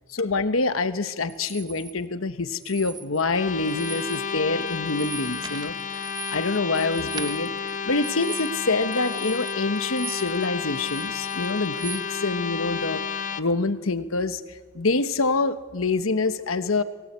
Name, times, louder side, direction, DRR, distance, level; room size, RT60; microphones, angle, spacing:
voice 1, 0.1-13.0 13.4-16.8, left 3 dB, 80° left, 11 dB, 1.2 m, -26 dB
sound 1, 1.3-1.9 2.5-3.4 3.6-4.3 4.6-10.5 10.7-12.0, right 6 dB, 20° right, 0.8 m, -40 dB
sound 2, 3.2-13.4, left 6 dB, 40° left, 0.8 m, -31 dB
23.0 x 16.0 x 8.2 m, 1.4 s
head